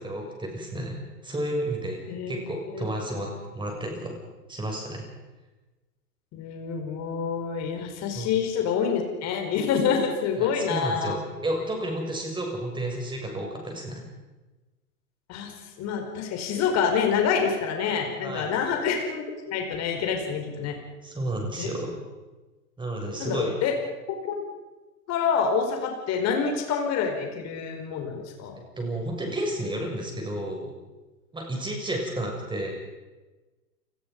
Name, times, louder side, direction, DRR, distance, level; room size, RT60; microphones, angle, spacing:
voice 1, 0.0-2.0 2.3-4.2 4.5-5.0 8.1-8.3 10.4-14.0 18.2-18.5 21.0-21.9 22.8-23.6 28.6-30.7 31.3-32.7, right 1 dB, 10° right, 1 dB, 7.0 m, -31 dB
voice 2, 2.1-2.4 2.7-2.8 6.3-11.2 15.3-15.5 15.8-20.8 21.6-21.7 23.2-23.7 24.2-24.4 25.1-28.6, left 6 dB, 35° left, 3 dB, 4.9 m, -27 dB
29.0 x 20.5 x 5.4 m, 1.2 s
hypercardioid pair, 110°, 47 cm